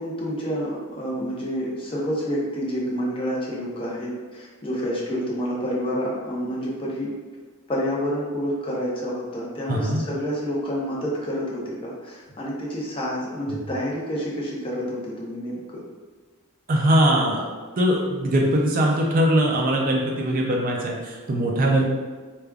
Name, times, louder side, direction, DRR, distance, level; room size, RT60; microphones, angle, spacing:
voice 1, 0.0-7.1 7.7-15.8, equal, 25° left, -5 dB, 0.7 m, -28 dB
voice 2, 9.7-10.0 16.7-17.5 17.8-21.8, right 1 dB, 40° right, -1 dB, 0.4 m, -21 dB
4.9 x 2.3 x 2.3 m, 1.4 s
head